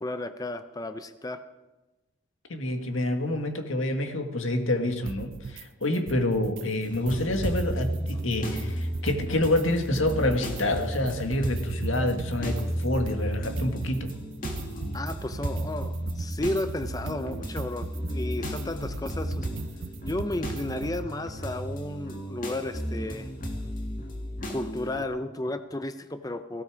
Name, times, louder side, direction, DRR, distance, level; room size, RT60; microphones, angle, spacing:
voice 1, 0.0-1.4 14.9-19.5 20.1-23.3 24.5-26.6, left 1 dB, 20° left, 10 dB, 0.5 m, -33 dB
voice 2, 2.5-14.1, left 1 dB, 90° left, 5 dB, 1.9 m, -27 dB
sound 1, 5.1-5.6 5.9-6.6 6.9-9.6 9.9-21.1, right 4 dB, 75° right, 0.5 m, -39 dB
sound 2, 6.8-25.0, equal, 40° left, 2.4 m, -34 dB
18.5 x 16.0 x 4.9 m, 1.1 s
head